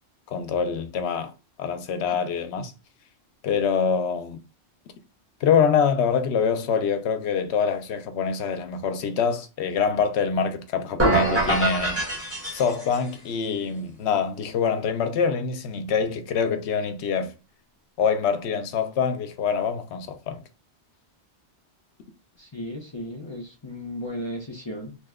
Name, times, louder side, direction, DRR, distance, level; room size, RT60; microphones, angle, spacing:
voice 1, 0.3-1.3 1.6-2.7 3.4-4.4 5.4-12.0 12.5-17.3 18.0-20.4, left 6 dB, 75° left, 0.8 m, -25 dB
sound 1, 11.0-13.1, right 2 dB, 15° right, 1.1 m, -24 dB
voice 2, 22.4-25.0, left 1 dB, 35° left, 0.5 m, -35 dB
2.9 x 2.1 x 3.5 m
omnidirectional pair, 1.1 m